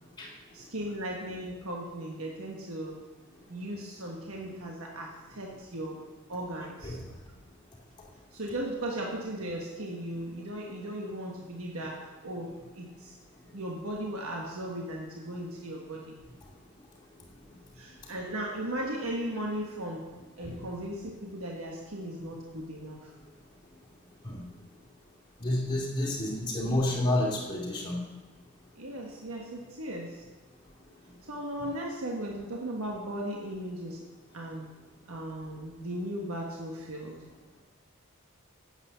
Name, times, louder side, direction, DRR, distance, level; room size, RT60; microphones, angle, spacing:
voice 1, 0.5-2.9 3.5-5.9 6.3-7.0 8.3-13.2 13.5-16.2 17.7-20.1 20.4-23.1 28.7-30.2 31.2-34.0 34.3-34.7 35.1-37.2, right 1 dB, 70° right, -1 dB, 1.4 m, -37 dB
voice 2, 25.4-28.0, left 1 dB, 20° left, -3 dB, 2.6 m, -29 dB
9.8 x 8.1 x 6.8 m, 1.3 s
head